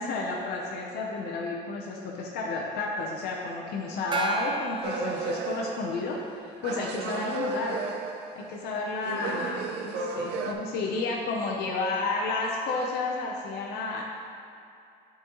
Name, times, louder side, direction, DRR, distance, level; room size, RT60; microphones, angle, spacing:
voice 1, 0.0-7.9 8.3-14.0, left 3 dB, 75° left, -2 dB, 0.7 m, -31 dB
Gong, 4.1-6.1, right 4 dB, 30° right, 0.5 m, -34 dB
sound 1, 4.8-6.3 6.6-8.7 9.0-10.5, right 4 dB, 85° right, 0.5 m, -33 dB
9.4 x 3.8 x 3.0 m, 2.6 s
cardioid pair, 110°, 17 cm